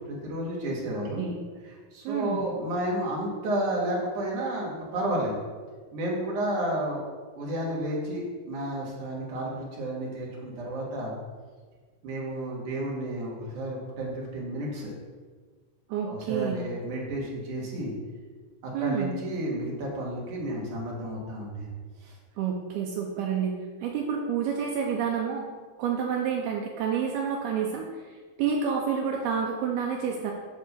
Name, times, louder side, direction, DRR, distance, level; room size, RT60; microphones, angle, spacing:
voice 1, 0.1-1.2 1.9-5.3 5.9-7.0 7.3-11.1 12.0-14.9 16.0-17.9 18.6-21.7 22.0-22.1, right 1 dB, 55° right, -3 dB, 2.5 m, -31 dB
voice 2, 2.1-2.4 15.9-16.6 18.7-19.1 22.4-23.5 23.8-25.4 25.8-27.9 28.4-30.3, right 7 dB, 85° right, 0 dB, 2.2 m, -29 dB
9.6 x 3.7 x 6.7 m, 1.5 s
omnidirectional pair, 5.3 m